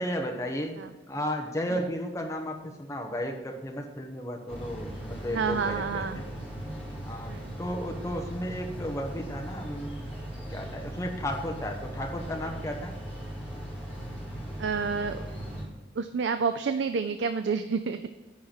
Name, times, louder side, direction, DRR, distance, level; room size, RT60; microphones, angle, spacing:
voice 1, 0.0-0.8 1.1-6.3 7.1-10.0 10.5-12.9, equal, 15° left, 2 dB, 1.0 m, -34 dB
sound 1, 4.5-15.6, right 1 dB, 5° right, 2.2 m, -38 dB
voice 2, 5.3-6.2 7.3-7.5 14.6-15.2 16.0-18.0, right 5 dB, 75° right, 9 dB, 0.4 m, -29 dB
10.5 x 4.5 x 7.3 m, 1.1 s
head